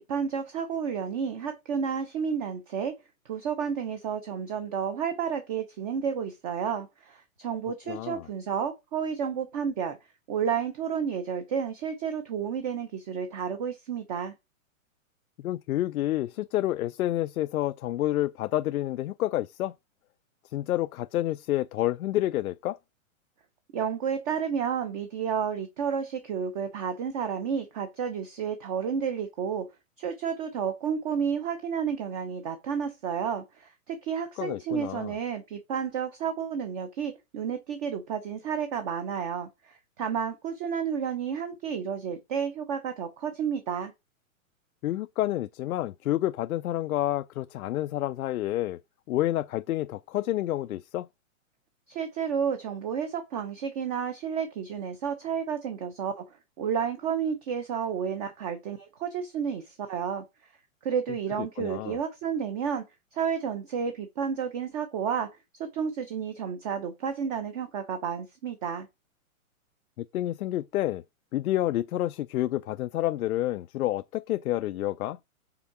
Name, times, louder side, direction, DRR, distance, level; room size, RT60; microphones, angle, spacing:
voice 1, 0.0-2.9 3.3-10.0 10.3-14.3 23.7-29.7 30.0-43.9 51.9-56.3 56.6-60.2 60.8-62.8 63.1-65.3 65.6-68.9, right 7 dB, 25° right, 0.7 m, -31 dB
voice 2, 7.9-8.2 15.4-19.7 20.5-22.8 34.4-35.1 44.8-48.8 49.1-51.1 61.4-62.0 70.0-71.0 71.3-75.2, left 14 dB, 90° left, 0.5 m, -29 dB
5.8 x 3.7 x 5.9 m
hypercardioid pair, 155°, 41 cm